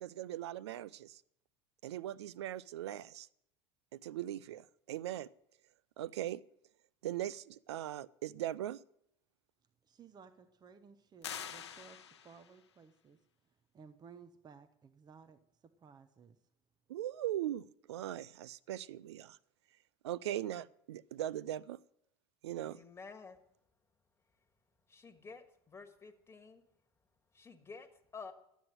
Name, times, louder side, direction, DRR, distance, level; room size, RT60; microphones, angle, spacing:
voice 1, 0.0-1.2 1.8-3.3 3.9-5.3 6.0-6.4 7.0-8.8 16.9-19.4 20.0-21.8 22.4-22.8, right 12 dB, 80° right, 21 dB, 0.4 m, -40 dB
voice 2, 9.8-16.4, right 6 dB, 30° right, 11 dB, 0.9 m, -58 dB
sound 1, 11.2-12.6, left 8 dB, 90° left, 0.8 m, -45 dB
voice 3, 22.6-23.4 24.9-26.6 27.3-28.3, left 4 dB, 20° left, 7 dB, 1.7 m, -51 dB
12.0 x 8.2 x 7.8 m, 0.75 s
hypercardioid pair, 80°, 14 cm